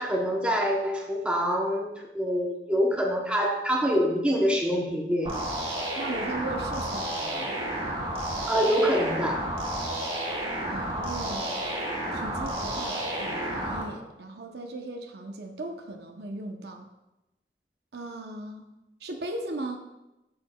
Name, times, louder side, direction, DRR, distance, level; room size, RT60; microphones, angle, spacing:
voice 1, 0.0-1.9 2.1-5.3 8.5-9.5, equal, 5° right, -1 dB, 0.7 m, -25 dB
sound 1, 5.2-13.8, right 1 dB, 30° right, 1.3 m, -31 dB
voice 2, 5.9-7.5 10.7-11.6 12.1-16.9 17.9-18.7 19.0-19.8, right 2 dB, 65° right, 4 dB, 0.7 m, -37 dB
8.5 x 6.5 x 2.2 m, 0.95 s
head